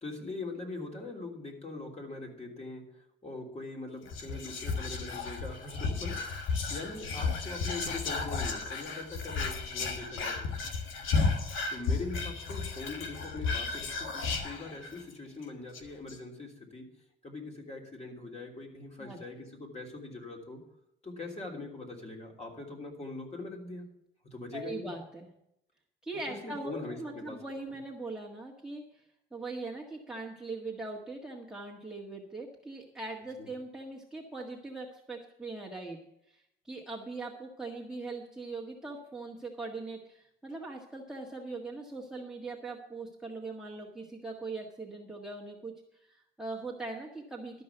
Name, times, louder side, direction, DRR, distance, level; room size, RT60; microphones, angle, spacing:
voice 1, 0.0-6.4 6.7-10.5 11.7-16.8 17.2-20.6 21.0-23.9 24.3-24.9 26.3-27.4 33.4-33.5, left 2 dB, 35° left, 0 dB, 3.2 m, -42 dB
Whispering, 4.1-15.1 15.4-15.5 15.7-16.2, left 4 dB, 80° left, 1.5 m, -33 dB
voice 2, 24.5-25.3 26.0-29.0 29.3-36.0 36.3-45.7 46.0-47.6, right 3 dB, 5° right, 0 dB, 1.7 m, -41 dB
12.5 x 5.4 x 7.9 m, 0.79 s
cardioid pair, 90°, 20 cm